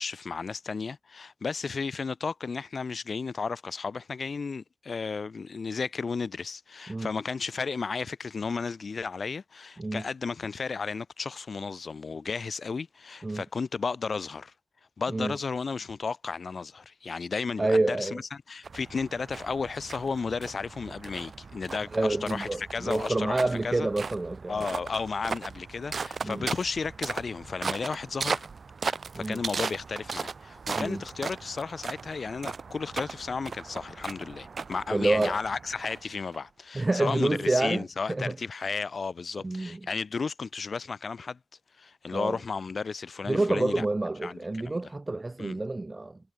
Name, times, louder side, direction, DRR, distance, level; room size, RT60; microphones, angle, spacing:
voice 1, 0.0-14.5 15.0-23.9 24.5-28.5 28.9-41.4 41.8-43.8 44.2-44.8 45.4-45.6, left 5 dB, 65° left, 2.6 m, -33 dB
voice 2, 17.6-18.2 21.9-24.7 26.2-26.5 29.1-29.4 30.7-31.0 34.9-35.4 36.7-38.4 39.4-39.8 42.1-42.4 43.3-46.2, right 2 dB, 35° right, 1.0 m, -28 dB
sound 1, 18.6-36.4, right 5 dB, 65° right, 2.7 m, -37 dB
cardioid pair, 40°, 0 cm